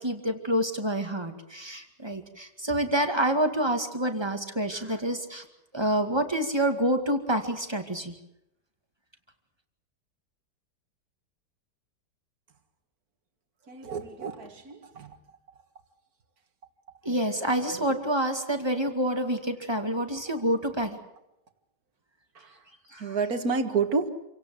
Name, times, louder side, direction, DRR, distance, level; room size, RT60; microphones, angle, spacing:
voice 1, 0.0-5.5 5.7-8.1 17.0-21.0 22.9-23.2, right 1 dB, 15° right, 5 dB, 2.1 m, -27 dB
voice 2, 13.7-15.1 23.0-24.1, right 5 dB, 60° right, 8 dB, 2.1 m, -29 dB
27.5 x 17.5 x 7.7 m, 0.87 s
omnidirectional pair, 1.8 m